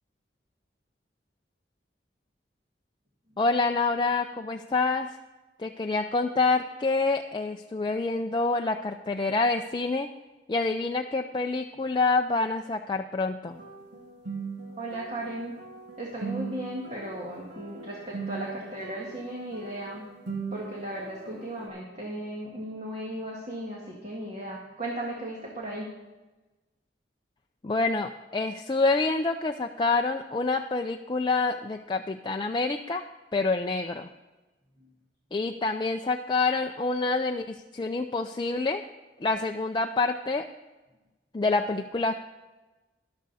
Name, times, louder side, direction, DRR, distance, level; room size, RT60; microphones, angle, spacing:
voice 1, 3.4-5.1 5.6-10.1 10.5-13.6 27.6-33.1 33.3-34.1 35.3-38.8 39.2-40.4 41.3-42.1, left 3 dB, 25° left, 4 dB, 0.4 m, -27 dB
sound 1, 13.5-21.7, right 5 dB, 80° right, 2.3 m, -40 dB
voice 2, 14.8-15.6 16.0-20.1 20.5-25.9, right 1 dB, 40° right, -3 dB, 1.9 m, -36 dB
13.0 x 11.5 x 4.1 m, 1.1 s
head